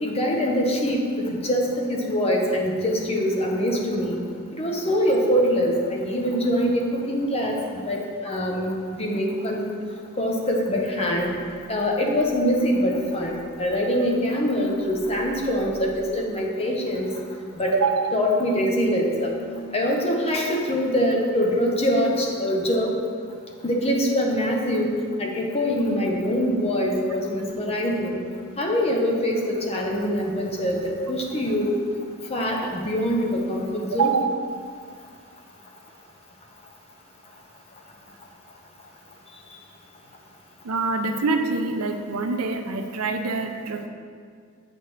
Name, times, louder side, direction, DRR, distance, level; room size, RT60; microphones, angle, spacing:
voice 1, 0.0-4.2 4.5-7.6 7.9-9.7 10.2-11.4 11.7-17.2 17.6-17.7 18.1-23.0 23.6-28.2 28.6-31.8 32.3-34.1, equal, 25° left, 0 dB, 0.8 m, -24 dB
voice 2, 17.7-18.1 33.9-34.3 40.6-43.9, right 4 dB, 75° right, 6 dB, 0.6 m, -25 dB
7.8 x 6.1 x 3.2 m, 2.1 s
head